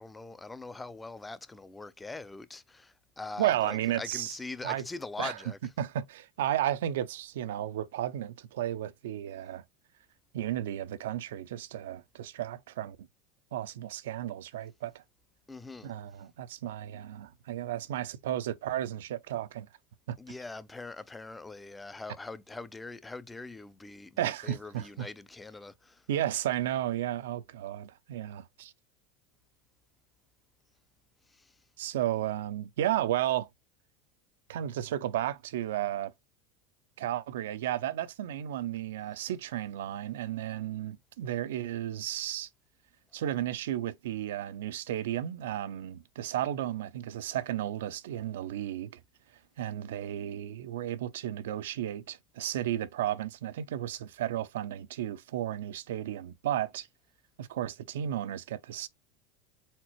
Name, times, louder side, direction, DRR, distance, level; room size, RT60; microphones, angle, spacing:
voice 1, 0.0-5.6 15.5-15.9 20.2-26.0 31.3-31.5, left 3 dB, 10° left, 0.5 m, -42 dB
voice 2, 3.4-4.4 4.6-4.8 5.2-5.4 5.8-9.6 10.3-13.0 13.5-15.0 15.8-19.7 20.1-20.2 24.2-25.1 26.1-28.7 31.8-33.5 34.5-36.1 37.0-42.5 43.1-48.9 49.6-56.9 57.4-58.9, right 12 dB, 85° right, 0.5 m, -33 dB
4.3 x 3.8 x 3.0 m
supercardioid pair, 115°, 0 cm